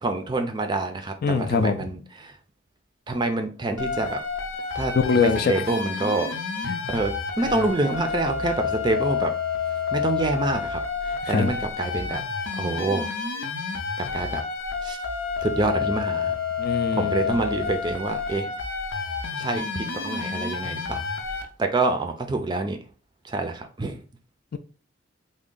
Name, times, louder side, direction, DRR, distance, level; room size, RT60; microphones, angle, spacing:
voice 1, 0.0-2.3 3.1-4.2 4.7-6.3 6.9-9.3 9.9-12.2 12.6-13.1 14.0-14.4 14.8-15.0 15.4-16.4 16.9-18.5 19.4-21.1 21.6-22.8 23.2-24.0, right 2 dB, 20° right, 0.4 m, -27 dB
voice 2, 1.2-1.9 5.0-5.6 6.7-6.8 7.4-7.7 11.2-11.5 16.6-17.4 24.5-24.6, left 5 dB, 50° left, 0.3 m, -24 dB
sound 1, 3.8-21.4, left 5 dB, 80° left, 0.7 m, -29 dB
3.5 x 2.1 x 3.7 m
head